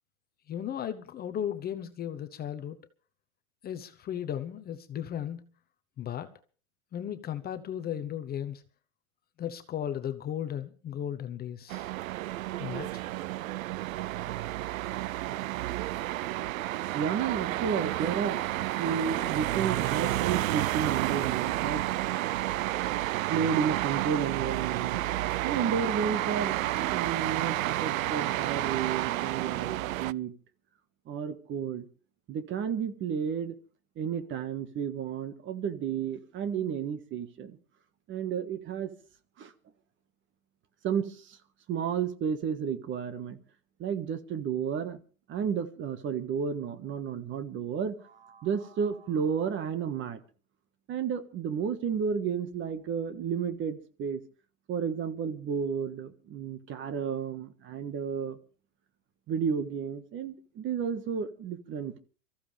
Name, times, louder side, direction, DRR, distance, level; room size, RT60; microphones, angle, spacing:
voice 1, 0.5-2.8 3.6-5.5 6.0-6.3 6.9-8.6 9.4-11.9 12.6-13.0, left 10 dB, 20° left, 1.0 m, -35 dB
sound 1, 11.7-30.1, right 16 dB, 70° right, 0.7 m, -31 dB
voice 2, 16.9-18.4 18.8-22.1 23.3-25.0 25.4-26.6 26.9-30.3 31.1-31.9 32.3-33.6 34.0-37.6 38.1-38.9 39.4-39.5 40.8-41.4 41.7-43.4 43.8-45.0 45.3-50.2 50.9-54.2 54.7-58.4 59.3-62.0, right 7 dB, 30° right, 1.5 m, -32 dB
24.0 x 14.5 x 3.4 m
hypercardioid pair, 130°, 42 cm